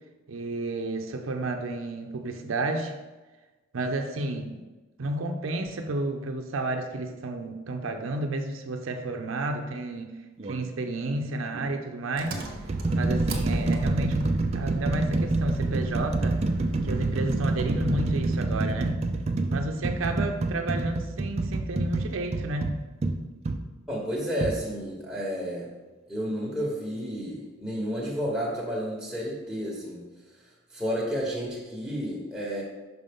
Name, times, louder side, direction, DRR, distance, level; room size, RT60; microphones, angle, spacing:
voice 1, 0.3-3.0 3.7-4.7 5.0-10.2 10.4-12.4 12.9-16.4 16.8-19.0 19.5-22.7, right 2 dB, 80° right, 4 dB, 0.6 m, -31 dB
sound 1, 10.4-10.6 11.5-11.7 12.3-23.6 24.4-24.6, right 2 dB, 30° right, 0.4 m, -27 dB
Engine, 12.2-18.5, right 2 dB, 50° right, 0.8 m, -37 dB
voice 2, 23.9-25.7 26.1-30.0 30.7-32.6, equal, ahead, -6 dB, 1.1 m, -31 dB
5.8 x 5.4 x 3.6 m, 1.2 s
head